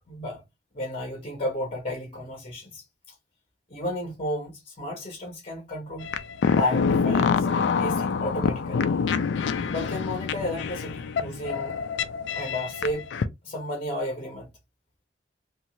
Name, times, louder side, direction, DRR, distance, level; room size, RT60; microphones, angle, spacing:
voice 1, 0.1-0.4 0.7-2.8 3.7-6.1 6.5-8.9 9.6-11.8 12.3-13.0 13.4-14.5, left 1 dB, 35° left, 0.7 m, -32 dB
sound 1, 6.0-13.2, left 5 dB, 80° left, 0.4 m, -26 dB
2.7 x 2.3 x 2.9 m
head